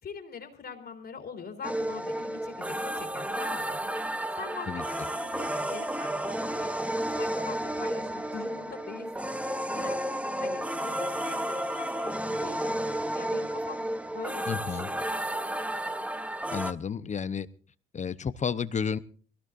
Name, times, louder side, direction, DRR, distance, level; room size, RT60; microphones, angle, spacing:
voice 1, 0.0-15.0, left 6 dB, 55° left, 4 dB, 3.7 m, -44 dB
sound 1, 1.6-16.7, right 1 dB, 5° right, 0.9 m, -32 dB
voice 2, 4.7-5.0 14.5-14.9 16.5-17.5 17.9-19.0, left 6 dB, 35° left, 15 dB, 0.9 m, -32 dB
22.5 x 17.5 x 2.6 m, 0.41 s
cardioid pair, 90°, 20 cm